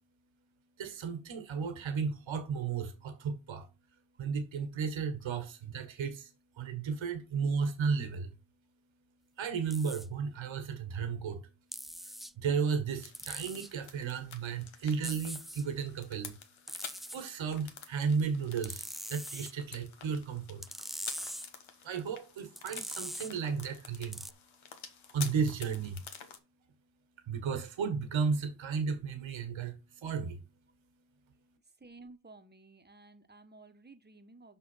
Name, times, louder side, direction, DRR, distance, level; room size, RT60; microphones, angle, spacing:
voice 1, 0.8-3.7 4.2-8.3 9.4-11.5 12.0-16.3 17.1-20.7 21.8-24.3 25.1-26.0 27.3-30.4, right 5 dB, 75° right, 1.6 m, -34 dB
sound 1, 9.7-10.1 11.7-12.3 13.1-13.7 15.0-15.7 16.7-17.2 18.6-19.5 20.6-21.5 22.6-23.3 24.1-24.3, equal, ahead, 0.4 m, -42 dB
sound 2, 12.9-26.4, left 7 dB, 80° left, 1.4 m, -49 dB
voice 2, 31.8-34.6, right 3 dB, 20° right, 1.3 m, -54 dB
5.8 x 5.6 x 5.7 m
cardioid pair, 70°, 47 cm